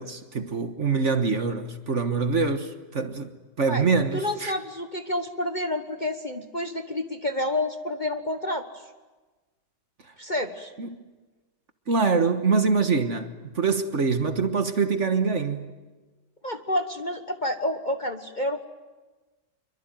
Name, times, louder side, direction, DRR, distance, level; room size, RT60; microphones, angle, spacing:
voice 1, 0.0-3.3 3.6-4.5 10.8-11.0 11.9-15.7, right 4 dB, 45° right, 1.6 m, -24 dB
voice 2, 4.1-8.8 10.2-10.7 16.4-18.6, left 1 dB, 30° left, 1.2 m, -29 dB
26.5 x 23.5 x 9.2 m
omnidirectional pair, 1.9 m